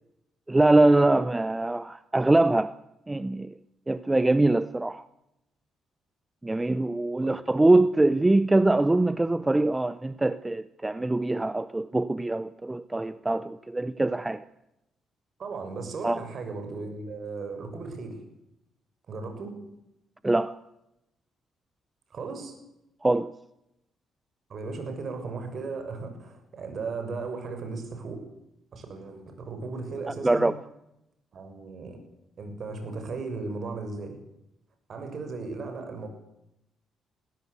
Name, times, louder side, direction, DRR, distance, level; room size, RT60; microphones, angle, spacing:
voice 1, 0.5-2.7 3.1-3.5 3.9-5.0 6.4-14.4 16.0-16.2 20.2-20.6 23.0-23.3 30.2-30.5, right 2 dB, 15° right, 0.7 m, -23 dB
voice 2, 15.4-18.2 19.1-19.5 22.1-22.5 24.5-28.2 28.7-30.5 31.3-32.0 32.4-34.2 34.9-36.1, right 4 dB, 55° right, 6.6 m, -36 dB
21.0 x 16.5 x 8.3 m
cardioid pair, 90°, 0 cm